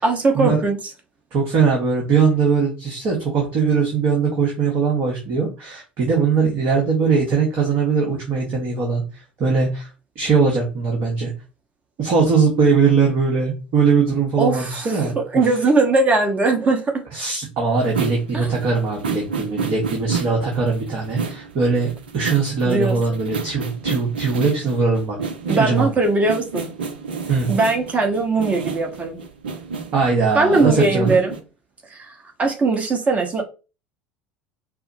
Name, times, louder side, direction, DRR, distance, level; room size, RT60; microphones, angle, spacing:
voice 1, 0.0-0.8 14.4-17.0 18.3-18.5 22.6-23.2 25.5-26.7 27.5-29.2 30.3-31.3 31.9-32.1 32.4-33.4, right 3 dB, 25° right, 1.0 m, -20 dB
voice 2, 1.3-9.9 10.1-11.3 12.0-15.5 17.1-21.9 22.1-25.2 25.5-25.9 27.3-27.5 29.9-31.2, right 5 dB, 45° right, 1.1 m, -20 dB
sound 1, 17.8-31.4, right 5 dB, 75° right, 0.5 m, -31 dB
4.6 x 2.0 x 2.6 m
figure-of-eight pair, 70°, 5 cm